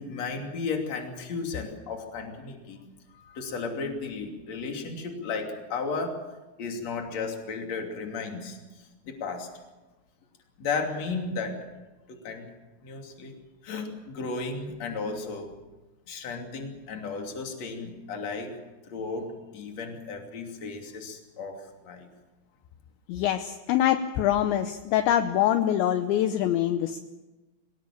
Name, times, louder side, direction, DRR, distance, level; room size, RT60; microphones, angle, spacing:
voice 1, 0.0-2.8 3.1-6.3 6.6-9.5 10.6-11.6 12.1-12.5 12.8-13.3 13.6-15.5 16.1-18.6 18.9-22.1, left 4 dB, 40° left, 3 dB, 3.3 m, -34 dB
voice 2, 23.1-27.0, left 11 dB, 75° left, 8 dB, 2.9 m, -24 dB
25.0 x 18.5 x 7.4 m, 1.1 s
omnidirectional pair, 5.8 m